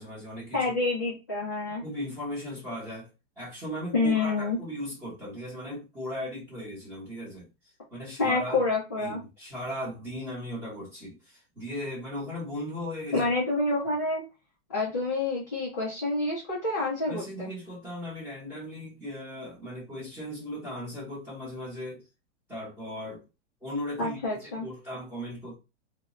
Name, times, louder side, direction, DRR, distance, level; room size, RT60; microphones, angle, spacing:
voice 1, 0.0-0.7 1.8-3.1 3.4-7.5 7.9-8.6 9.0-13.3 17.1-22.0 22.5-23.2 23.6-25.6, equal, 5° right, 0.8 m, -37 dB
voice 2, 0.5-1.8 3.9-4.6 8.2-9.2 13.1-14.2 14.7-17.5 24.0-24.7, left 3 dB, 15° left, 0.3 m, -28 dB
2.1 x 2.0 x 3.5 m
supercardioid pair, 175°, 36 cm